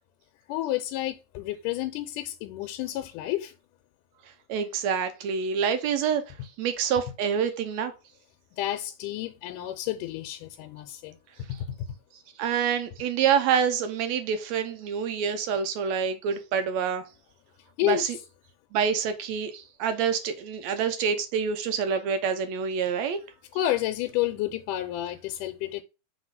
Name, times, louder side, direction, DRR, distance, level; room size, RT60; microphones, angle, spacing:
voice 1, 0.5-3.5 8.6-11.8 17.8-18.1 23.5-25.8, left 14 dB, 85° left, 2.2 m, -30 dB
voice 2, 4.5-6.2 6.6-7.9 12.4-17.0 17.9-18.2 18.7-23.2, right 7 dB, 80° right, 1.7 m, -27 dB
5.9 x 3.3 x 5.6 m
omnidirectional pair, 3.7 m